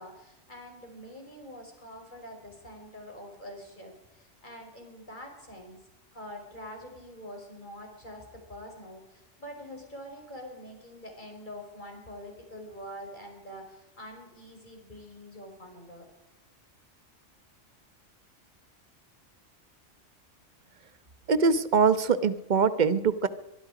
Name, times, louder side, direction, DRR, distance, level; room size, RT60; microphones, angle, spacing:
voice 1, 0.0-5.8 6.1-16.1, equal, 40° left, 2 dB, 5.7 m, -45 dB
voice 2, 21.3-23.3, right 5 dB, 40° right, 13 dB, 1.1 m, -23 dB
23.5 x 22.5 x 5.0 m, 0.96 s
omnidirectional pair, 1.3 m